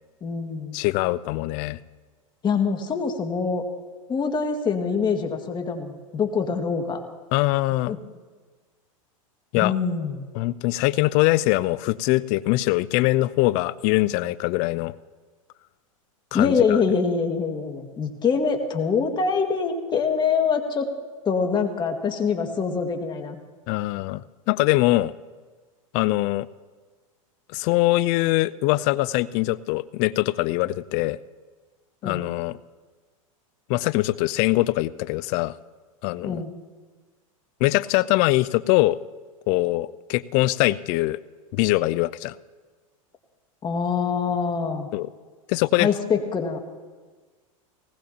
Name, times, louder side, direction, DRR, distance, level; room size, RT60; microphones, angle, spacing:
voice 1, 0.2-0.8 2.4-3.6 4.1-7.0 7.9-8.0 9.6-10.2 16.3-20.9 21.3-23.4 32.0-32.2 36.2-36.5 43.6-44.9 45.8-46.6, left 5 dB, 25° left, 4 dB, 1.9 m, -24 dB
voice 2, 0.7-1.8 7.3-7.9 9.5-9.7 10.3-14.9 16.3-16.5 23.7-25.1 25.9-26.5 27.5-31.2 32.0-32.6 33.7-35.5 36.0-36.4 37.6-39.0 39.5-41.2 41.5-42.3 44.9-45.1 45.5-45.9, left 19 dB, 50° left, 19 dB, 0.5 m, -22 dB
19.0 x 19.0 x 2.9 m, 1.4 s
hypercardioid pair, 110°, 17 cm